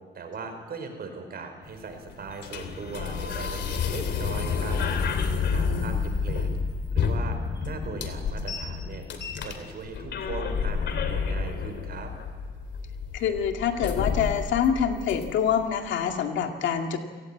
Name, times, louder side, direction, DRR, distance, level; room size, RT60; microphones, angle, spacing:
voice 1, 0.1-4.8 5.5-6.5 6.9-7.4 7.6-9.0 9.4-12.1, right 4 dB, 55° right, 6 dB, 5.0 m, -39 dB
sound 1, 1.6-15.6, left 5 dB, 70° left, 3.0 m, -30 dB
voice 2, 5.5-6.0 13.1-17.0, left 8 dB, 85° left, 4 dB, 2.2 m, -26 dB
28.0 x 18.0 x 8.7 m, 1.5 s
cardioid pair, 90°, 19 cm